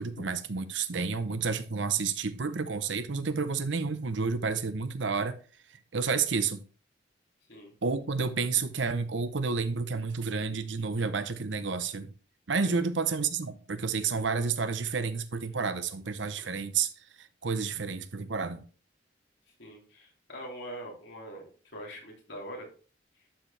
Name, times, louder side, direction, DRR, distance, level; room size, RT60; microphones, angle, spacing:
voice 1, 0.0-5.4 5.9-6.6 7.8-12.1 12.5-16.9 17.2-18.7, right 5 dB, 80° right, 0.8 m, -30 dB
voice 2, 19.6-22.7, equal, 70° left, 3.0 m, -43 dB
11.5 x 4.5 x 3.3 m
head